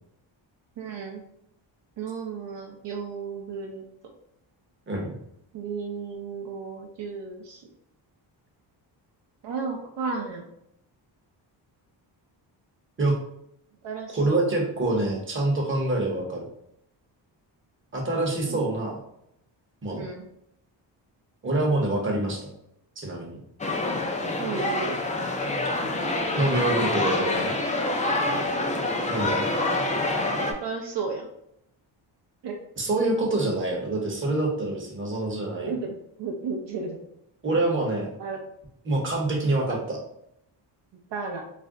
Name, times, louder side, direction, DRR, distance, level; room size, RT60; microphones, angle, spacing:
voice 1, 0.8-1.2 2.0-3.8 5.5-7.6 9.4-10.4 13.8-14.4 18.5-18.6 20.0-20.3 24.4-25.0 28.3-28.5 30.4-31.3 32.4-32.6 35.6-35.9 36.2-37.0 38.2-38.4 41.1-41.4, right 5 dB, 65° right, 1 dB, 0.6 m, -33 dB
voice 2, 14.1-16.5 17.9-19.0 19.8-20.0 21.4-22.5 23.0-23.4 26.4-27.5 29.1-29.5 32.8-35.7 37.4-38.1 38.8-40.0, right 2 dB, 25° right, -1 dB, 0.8 m, -26 dB
sound 1, 23.6-30.5, left 2 dB, 20° left, 0.3 m, -26 dB
2.5 x 2.1 x 3.6 m, 0.76 s
cardioid pair, 100°, 45 cm